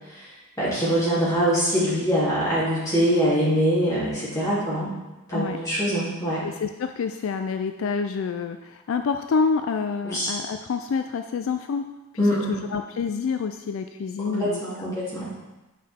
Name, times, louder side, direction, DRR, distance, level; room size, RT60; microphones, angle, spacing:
voice 1, 0.6-4.9 5.3-6.4 10.0-10.3 12.2-12.6 14.2-15.3, equal, 15° left, -10 dB, 2.9 m, -23 dB
voice 2, 6.4-11.9 12.1-14.9, left 5 dB, 65° left, 8 dB, 0.3 m, -28 dB
8.7 x 5.5 x 3.5 m, 1.1 s
head